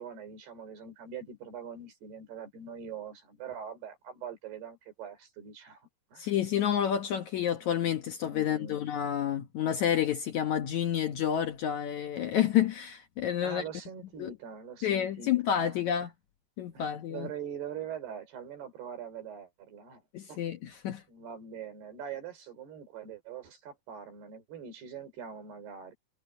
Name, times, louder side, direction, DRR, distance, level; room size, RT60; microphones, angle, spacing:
voice 1, 0.0-6.3 7.6-7.7 8.3-8.9 13.4-16.1 16.7-20.0 20.3-20.4 21.1-25.9, right 7 dB, 70° right, 6.2 m, -43 dB
voice 2, 6.2-13.6 14.2-14.3 14.8-16.1 16.6-17.3 20.1-21.0, left 10 dB, 75° left, 1.7 m, -29 dB
omnidirectional pair, 4.9 m